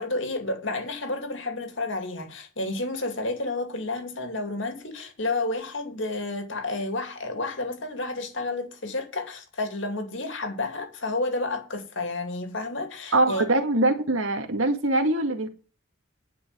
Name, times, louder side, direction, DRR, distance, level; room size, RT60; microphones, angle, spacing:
voice 1, 0.0-13.5, left 2 dB, 65° left, 2.4 m, -31 dB
voice 2, 13.1-15.5, right 2 dB, 85° right, 2.1 m, -23 dB
10.0 x 5.5 x 8.1 m
head